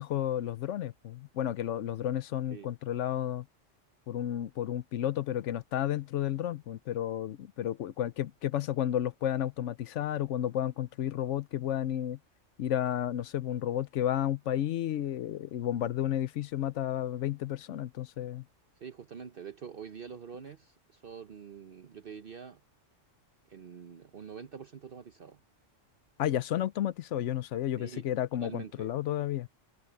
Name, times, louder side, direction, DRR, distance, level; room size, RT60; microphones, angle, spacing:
voice 1, 0.0-3.5 4.1-12.2 12.6-18.4 26.2-29.5, left 11 dB, 75° left, 0.9 m, -32 dB
voice 2, 18.8-22.6 23.5-25.4 27.8-28.0 28.3-28.9, right 6 dB, 50° right, 1.0 m, -45 dB
omnidirectional pair, 1.3 m